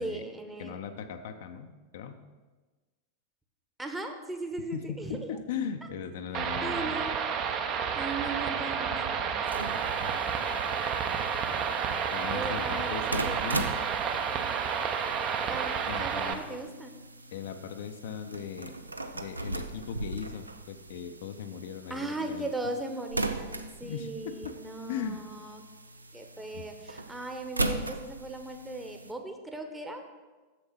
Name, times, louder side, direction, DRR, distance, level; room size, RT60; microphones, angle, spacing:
voice 1, 0.0-0.8 3.8-5.3 6.6-7.1 7.9-9.8 12.3-13.4 15.5-15.7 16.0-16.9 21.9-25.6 26.1-30.0, right 2 dB, 10° right, 5 dB, 1.0 m, -38 dB
voice 2, 0.6-2.2 4.7-7.0 10.0-10.2 12.1-13.7 15.9-16.4 17.3-18.7 19.1-22.5 23.8-24.6 24.9-25.2 26.5-26.6, left 7 dB, 55° left, 7 dB, 0.5 m, -38 dB
sound 1, 6.3-16.3, right 7 dB, 35° right, 0.8 m, -30 dB
sound 2, 9.4-29.1, right 2 dB, 80° right, 0.5 m, -39 dB
7.1 x 6.9 x 5.7 m, 1.3 s
figure-of-eight pair, 90°, 0 cm